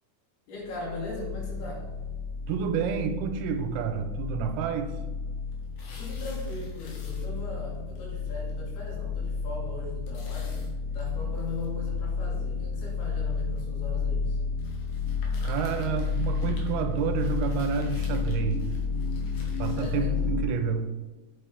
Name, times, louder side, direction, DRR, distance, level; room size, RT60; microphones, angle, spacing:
voice 1, 0.5-1.9 6.0-14.4 19.7-20.1, left 2 dB, 85° left, -2 dB, 4.2 m, -39 dB
sound 1, 0.6-20.4, left 5 dB, 40° left, 2.1 m, -31 dB
voice 2, 2.5-5.0 15.4-18.7 19.6-20.9, right 7 dB, 85° right, 8 dB, 2.7 m, -29 dB
sound 2, 5.5-7.6 8.0-8.1 8.5-8.6 8.9-9.0 10.1-11.7 12.3-12.4 13.4-13.6 14.6-20.0, left 3 dB, 70° left, 3.1 m, -52 dB
8.6 x 7.2 x 3.4 m, 1.2 s
omnidirectional pair, 4.4 m